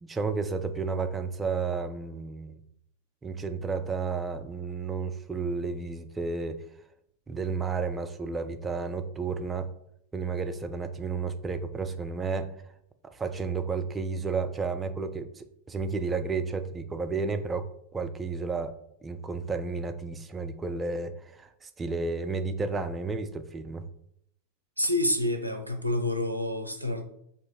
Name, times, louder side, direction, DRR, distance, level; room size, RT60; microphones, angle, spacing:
voice 1, 0.0-2.6 3.2-6.6 7.3-9.7 10.1-12.5 13.1-18.8 19.0-23.9, right 4 dB, 15° right, 0.3 m, -32 dB
voice 2, 24.8-27.0, left 1 dB, 90° right, 0.5 m, -28 dB
2.9 x 2.7 x 4.3 m
figure-of-eight pair, 90°, 0 cm